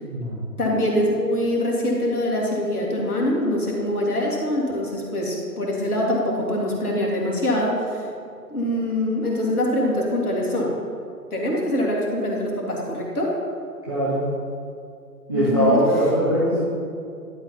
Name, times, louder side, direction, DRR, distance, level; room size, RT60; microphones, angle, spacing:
voice 1, 0.0-0.4 13.9-14.2 15.3-16.7, equal, 15° right, -9 dB, 0.6 m, -21 dB
voice 2, 0.6-8.0 8.5-10.7 11.3-13.3 15.3-15.8, left 1 dB, 60° left, -2 dB, 2.3 m, -24 dB
11.0 x 4.2 x 5.7 m, 2.4 s
figure-of-eight pair, 140°, 49 cm